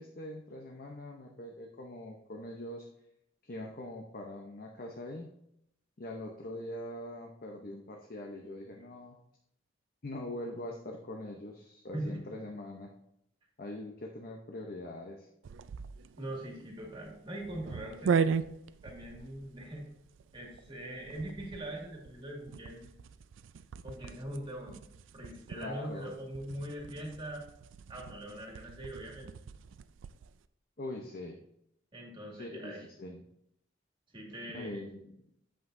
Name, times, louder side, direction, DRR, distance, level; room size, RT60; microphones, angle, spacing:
voice 1, 0.0-2.9 3.4-5.3 6.0-9.2 10.0-12.9 13.6-15.3 25.6-26.1 30.8-31.4 32.3-33.2 34.5-35.2, left 1 dB, 50° left, 1 dB, 0.8 m, -43 dB
sound 1, 15.4-30.4, right 6 dB, 85° right, 0.4 m, -39 dB
voice 2, 16.2-18.4 18.8-19.9 20.3-22.9 23.8-24.8 25.1-27.4 27.9-29.3 31.9-32.9 34.1-34.9, right 1 dB, 25° right, -1 dB, 2.0 m, -41 dB
8.6 x 7.5 x 2.6 m, 0.76 s
head